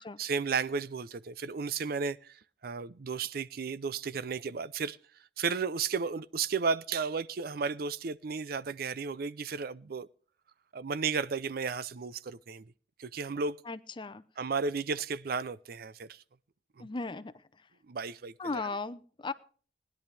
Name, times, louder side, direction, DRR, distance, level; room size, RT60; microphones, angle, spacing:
voice 1, 0.0-5.0 5.4-10.1 10.7-12.7 13.0-13.6 14.4-16.2 16.8-16.9 17.9-18.7, right 5 dB, 55° right, 0.5 m, -34 dB
voice 2, 13.7-14.2 16.8-17.3 18.4-19.3, left 3 dB, 25° left, 0.6 m, -36 dB
20.0 x 10.5 x 3.3 m
head